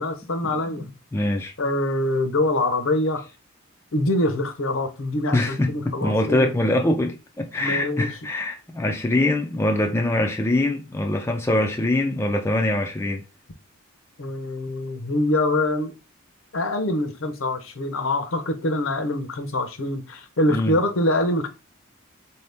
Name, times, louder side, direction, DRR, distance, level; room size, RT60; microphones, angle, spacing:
voice 1, 0.0-0.9 1.6-3.2 3.9-6.5 7.6-8.1 14.2-15.9 16.5-21.5, left 1 dB, 65° left, 0.7 m, -24 dB
voice 2, 0.7-1.5 5.3-13.2 20.5-20.8, left 1 dB, 10° left, 0.4 m, -23 dB
4.2 x 2.8 x 3.3 m
head